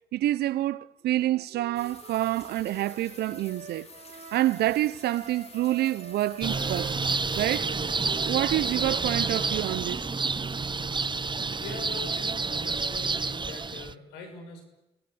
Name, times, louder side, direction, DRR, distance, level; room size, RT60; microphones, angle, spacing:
voice 1, 0.1-3.9 4.3-6.9 7.3-7.7 8.2-10.0, right 14 dB, 75° right, 0.8 m, -27 dB
Wind instrument woodwind instrument, 1.0-4.6 5.0-9.1, right 6 dB, 50° right, 4.0 m, -45 dB
sound 1, 1.7-7.6, left 3 dB, 40° left, 5.5 m, -50 dB
sound 2, 6.4-13.9, right 4 dB, 30° right, 0.9 m, -29 dB
voice 2, 11.6-14.7, left 3 dB, 85° left, 6.2 m, -42 dB
28.0 x 18.0 x 8.7 m
hypercardioid pair, 45°, 17 cm